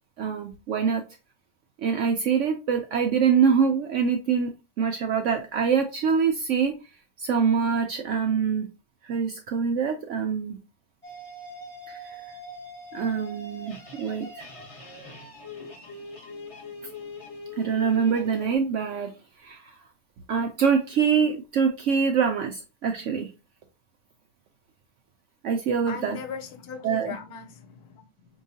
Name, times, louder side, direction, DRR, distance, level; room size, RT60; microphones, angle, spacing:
voice 1, 0.2-1.0 1.8-6.7 7.2-8.7 9.0-10.6 11.9-12.4 12.9-14.5 17.6-19.1 19.4-19.7 20.3-23.3 25.4-26.2 26.8-27.1, right 6 dB, 70° right, 0.7 m, -25 dB
sound 1, 11.0-18.5, left 2 dB, 25° left, 0.8 m, -42 dB
voice 2, 25.9-28.1, left 7 dB, 75° left, 1.1 m, -38 dB
4.6 x 2.8 x 2.7 m
omnidirectional pair, 1.7 m